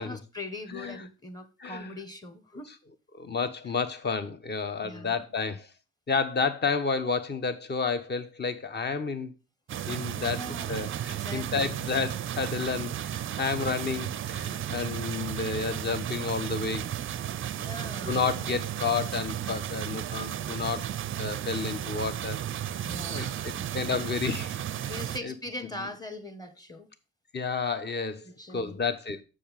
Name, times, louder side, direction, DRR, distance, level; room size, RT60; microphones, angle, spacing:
voice 1, 0.0-2.7 4.8-5.2 10.2-11.8 17.6-18.2 22.8-23.7 24.9-26.9 28.2-28.8, left 1 dB, 10° left, 1.3 m, -41 dB
voice 2, 3.1-5.7 6.1-9.3 9.9-10.4 10.7-16.8 18.1-20.9 21.2-22.4 23.1-24.9 25.2-25.3 27.3-29.2, left 5 dB, 35° left, 1.1 m, -31 dB
sound 1, 9.7-25.2, right 11 dB, 45° right, 0.5 m, -34 dB
6.9 x 6.4 x 5.2 m
cardioid pair, 90°, 30 cm